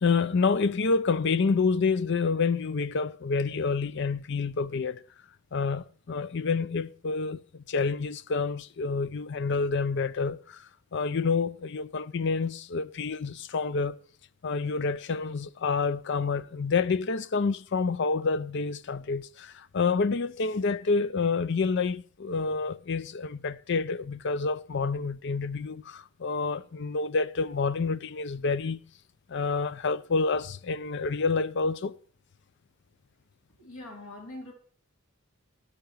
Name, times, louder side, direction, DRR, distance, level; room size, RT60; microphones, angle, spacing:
voice 1, 0.0-5.0 5.5-14.0 14.4-28.8 29.3-32.0, left 4 dB, 55° left, 0.5 m, -28 dB
voice 2, 33.6-34.5, left 2 dB, 85° left, 4.1 m, -42 dB
14.0 x 9.5 x 4.6 m
head